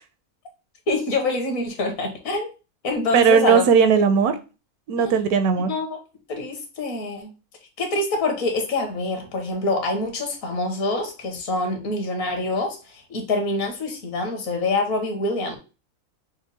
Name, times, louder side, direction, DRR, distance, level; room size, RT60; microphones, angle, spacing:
voice 1, 0.9-2.5 2.8-3.6 5.0-5.1 5.7-6.0 6.3-7.3 7.8-15.6, left 2 dB, 65° left, 1.5 m, -25 dB
voice 2, 3.1-4.4 4.9-5.7, right 6 dB, 85° right, 1.1 m, -17 dB
6.1 x 2.1 x 4.0 m
omnidirectional pair, 1.6 m